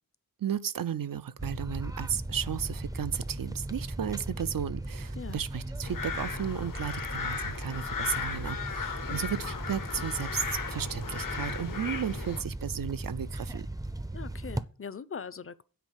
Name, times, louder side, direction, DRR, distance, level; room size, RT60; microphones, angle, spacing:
voice 1, 0.4-13.7, right 8 dB, 70° right, 0.5 m, -34 dB
sound 1, 1.4-14.6, right 1 dB, 10° right, 0.5 m, -37 dB
sound 2, 5.8-12.4, left 6 dB, 65° left, 0.8 m, -36 dB
voice 2, 14.1-15.6, left 6 dB, 40° left, 0.6 m, -41 dB
9.3 x 4.3 x 7.3 m
wide cardioid pair, 75°, 35 cm